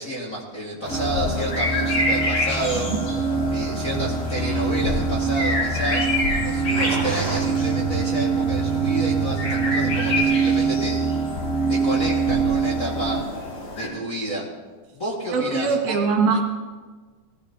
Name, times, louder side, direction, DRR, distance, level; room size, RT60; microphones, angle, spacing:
voice 1, 0.0-2.9 3.5-6.1 6.4-11.0 11.7-13.2 13.7-14.5 14.9-16.0, right 1 dB, 30° left, -5 dB, 1.8 m, -30 dB
sound 1, 0.8-13.9, left 2 dB, 70° left, 5.0 m, -29 dB
sound 2, 0.9-13.2, right 4 dB, ahead, 2.4 m, -24 dB
Truck, 2.6-10.2, right 8 dB, 55° right, 2.7 m, -32 dB
voice 2, 15.3-16.5, right 4 dB, 70° right, 1 dB, 3.1 m, -22 dB
19.0 x 16.0 x 2.8 m, 1.4 s
omnidirectional pair, 3.7 m